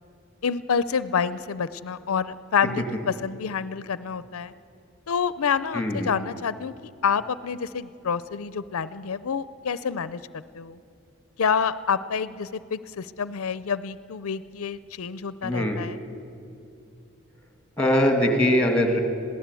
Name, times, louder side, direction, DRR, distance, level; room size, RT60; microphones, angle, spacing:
voice 1, 0.4-4.5 5.1-10.2 10.5-10.8 11.4-16.0, left 6 dB, 80° left, 15 dB, 0.5 m, -28 dB
voice 2, 5.7-6.1 15.4-15.8 17.8-19.0, left 1 dB, 5° left, 4 dB, 2.3 m, -21 dB
21.5 x 16.0 x 8.3 m, 2.5 s
head